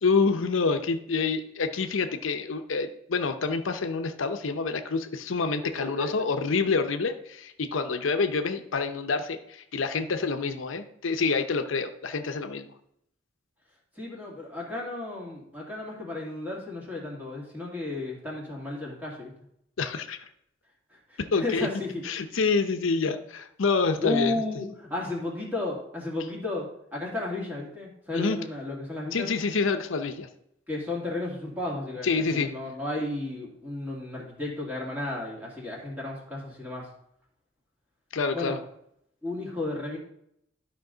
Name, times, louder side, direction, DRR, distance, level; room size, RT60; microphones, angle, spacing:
voice 1, 0.0-12.7 19.8-20.3 21.2-21.7 22.0-24.4 28.1-28.4 29.1-30.3 32.0-32.5 38.1-38.6, left 4 dB, 80° left, 8 dB, 0.6 m, -27 dB
voice 2, 14.0-19.3 21.1-22.0 24.0-29.3 30.7-36.9 38.3-38.6 39.2-40.0, left 2 dB, 10° right, -3 dB, 2.1 m, -33 dB
12.0 x 5.1 x 3.9 m, 0.74 s
head